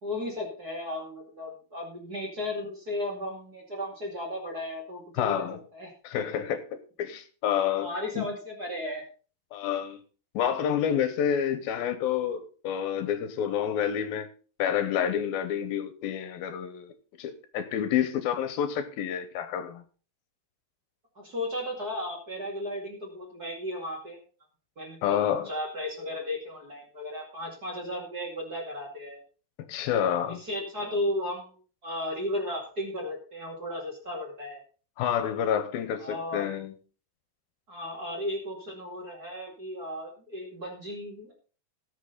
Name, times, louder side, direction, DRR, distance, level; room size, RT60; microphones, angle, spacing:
voice 1, 0.0-5.9 7.7-9.0 21.2-24.2 24.8-29.2 30.3-31.6 31.8-34.6 36.0-36.5 37.7-41.3, left 1 dB, 30° right, 2.2 m, -35 dB
voice 2, 5.2-5.6 6.0-6.6 7.0-7.9 8.2-8.3 9.5-10.0 10.3-14.3 14.6-16.9 17.2-19.8 25.0-25.5 29.7-30.4 35.0-36.7, left 9 dB, 80° left, 2.8 m, -28 dB
18.0 x 6.4 x 4.0 m
omnidirectional pair, 4.3 m